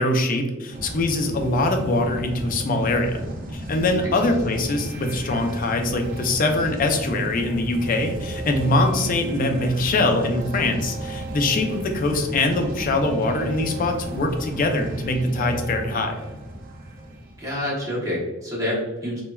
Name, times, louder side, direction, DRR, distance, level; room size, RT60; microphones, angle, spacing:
voice 1, 0.0-3.2 3.5-16.2, left 2 dB, 45° left, 4 dB, 0.4 m, -23 dB
sound 1, 0.7-17.8, right 1 dB, 45° right, 0.4 m, -33 dB
voice 2, 17.4-19.2, left 1 dB, 15° right, -6 dB, 0.9 m, -27 dB
3.1 x 2.2 x 2.2 m, 1.1 s
head